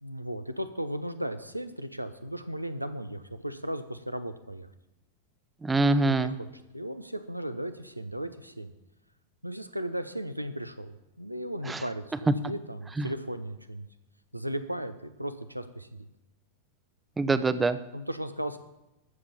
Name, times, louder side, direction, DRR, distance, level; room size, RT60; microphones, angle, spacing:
voice 1, 0.0-4.7 6.0-6.5 6.7-8.7 9.4-13.9 14.3-16.1 17.9-18.6, equal, 90° right, 10 dB, 0.9 m, -36 dB
voice 2, 5.6-6.3 11.7-11.8 13.0-13.1 17.2-17.8, right 3 dB, 10° right, 13 dB, 0.8 m, -24 dB
13.0 x 7.3 x 7.2 m, 0.94 s
figure-of-eight pair, 90°, 0 cm